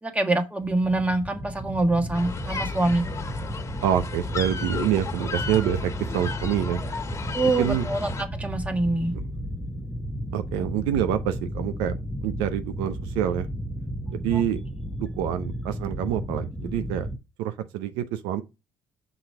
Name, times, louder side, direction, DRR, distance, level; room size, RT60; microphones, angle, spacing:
voice 1, 0.0-3.3 7.3-9.1 14.3-14.4, right 2 dB, 15° right, 1.5 m, -25 dB
sound 1, 0.6-17.2, equal, 5° left, 0.7 m, -34 dB
sound 2, 2.1-8.2, left 5 dB, 35° left, 1.4 m, -34 dB
voice 2, 3.8-6.8 7.4-7.9 10.3-13.5 14.1-14.6 15.0-17.1 17.4-18.4, right 11 dB, 85° right, 0.5 m, -27 dB
6.1 x 3.9 x 4.6 m
supercardioid pair, 70°, 8 cm